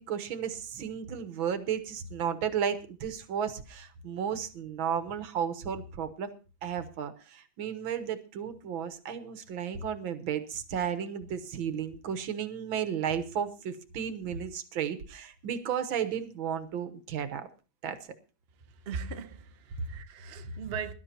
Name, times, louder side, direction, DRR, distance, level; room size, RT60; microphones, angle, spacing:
voice 1, 0.0-6.3 6.6-17.5 17.8-18.0, right 8 dB, 85° right, 1.9 m, -33 dB
voice 2, 18.8-20.9, right 6 dB, 40° right, 0.9 m, -39 dB
22.0 x 12.0 x 2.9 m
omnidirectional pair, 2.1 m